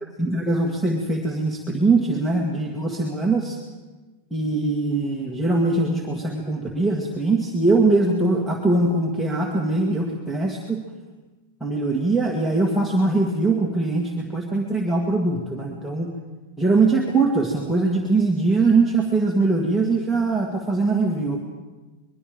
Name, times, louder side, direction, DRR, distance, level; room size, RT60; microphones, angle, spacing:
voice 1, 0.2-3.6 4.3-10.8 11.6-16.1 16.6-21.4, right 3 dB, ahead, -4 dB, 1.7 m, -22 dB
24.5 x 21.5 x 5.1 m, 1.2 s
supercardioid pair, 165°, 0 cm